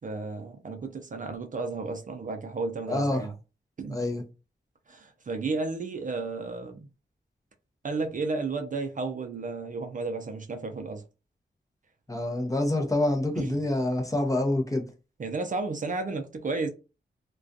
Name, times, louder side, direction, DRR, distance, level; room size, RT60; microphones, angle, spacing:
voice 1, 0.0-3.3 3.8-4.1 4.9-6.9 7.8-11.0 13.4-13.6 15.2-16.7, right 3 dB, 45° right, 0.4 m, -33 dB
voice 2, 2.9-3.3 3.9-4.2 12.1-14.8, left 1 dB, 15° left, 0.6 m, -26 dB
2.3 x 2.2 x 2.5 m
wide cardioid pair, 100°, 19 cm